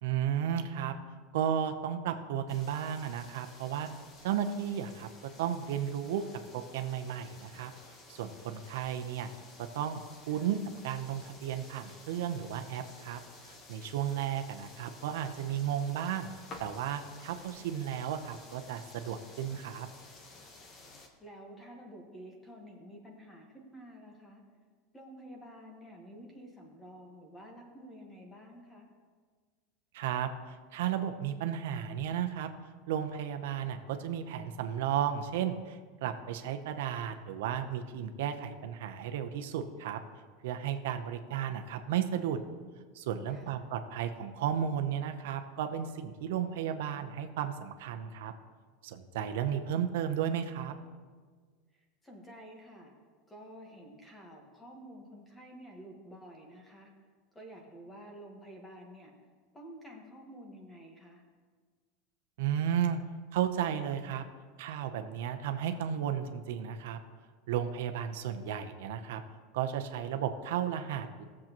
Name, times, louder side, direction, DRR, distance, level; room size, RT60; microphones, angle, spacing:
voice 1, 0.0-0.9 1.3-3.9 4.2-5.1 5.4-6.2 6.5-7.7 8.1-9.3 9.6-10.6 10.8-13.2 13.5-16.3 16.6-19.9 29.9-32.5 32.9-40.0 40.4-42.4 42.9-48.3 48.8-50.7 62.4-63.0 63.3-64.2 64.6-67.0 67.5-69.2 69.5-71.2, right 9 dB, 80° right, 7 dB, 0.7 m, -34 dB
sound 1, 2.5-21.1, left 2 dB, 25° left, 1.1 m, -53 dB
voice 2, 10.3-10.6 20.8-24.4 24.9-28.9 43.3-43.6 51.7-52.9 53.3-56.9 57.3-59.1 59.5-61.2, equal, 10° left, 1 dB, 1.4 m, -50 dB
17.0 x 7.4 x 3.0 m, 1.5 s
supercardioid pair, 165°, 0 cm